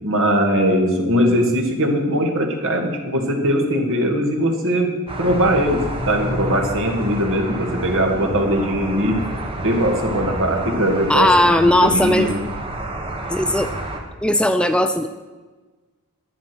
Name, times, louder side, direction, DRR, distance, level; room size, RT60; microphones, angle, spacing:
voice 1, 0.0-4.9 5.2-9.2 9.6-11.5 11.8-12.4, equal, 60° right, 2 dB, 2.2 m, -20 dB
sound 1, 5.1-14.0, right 1 dB, 25° right, 1.4 m, -29 dB
voice 2, 11.1-12.3 13.3-13.7 14.2-15.1, left 1 dB, 5° left, 9 dB, 0.4 m, -17 dB
11.0 x 10.0 x 6.1 m, 1.3 s
head